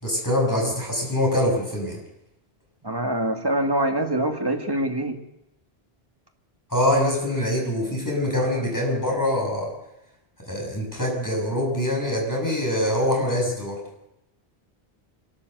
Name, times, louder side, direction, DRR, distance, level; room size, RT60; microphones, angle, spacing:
voice 1, 0.0-2.0 6.7-9.7 10.4-13.8, left 1 dB, 15° left, 0 dB, 6.7 m, -24 dB
voice 2, 2.8-5.2, right 1 dB, 20° right, 4 dB, 2.1 m, -24 dB
25.5 x 13.0 x 8.0 m, 0.87 s
omnidirectional pair, 1.1 m